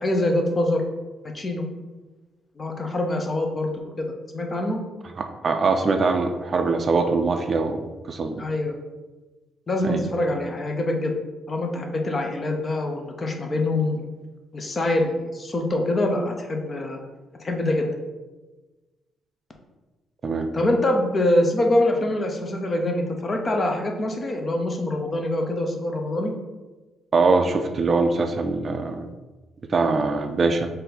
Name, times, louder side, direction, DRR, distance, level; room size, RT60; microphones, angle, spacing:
voice 1, 0.0-0.8 1.3-1.6 2.6-3.7 4.0-4.1 4.3-4.8 8.4-8.7 9.7-11.2 11.5-14.0 14.5-17.0 17.4-17.9 20.5-26.3, left 1 dB, 35° left, 3 dB, 0.6 m, -24 dB
voice 2, 5.2-7.8 8.1-8.4 9.8-10.0 20.2-20.5 27.1-29.1 29.7-30.7, right 3 dB, 40° right, 6 dB, 0.4 m, -22 dB
4.1 x 2.6 x 3.9 m, 1.2 s
cardioid pair, 90°, 0 cm